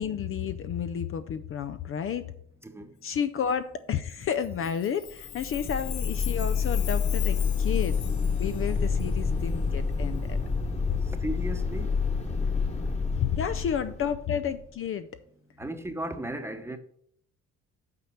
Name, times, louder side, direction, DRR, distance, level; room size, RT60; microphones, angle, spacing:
voice 1, 0.0-2.2 3.0-8.0 8.4-10.4 13.1-15.1, left 8 dB, 45° left, 0.5 m, -31 dB
Chime, 4.3-9.5, left 11 dB, 65° left, 1.1 m, -41 dB
sound 1, 5.2-14.6, left 5 dB, 20° left, 1.4 m, -28 dB
voice 2, 11.2-11.9 15.6-16.8, right 1 dB, 10° right, 1.0 m, -35 dB
8.5 x 4.4 x 6.4 m
supercardioid pair, 95°, 32 cm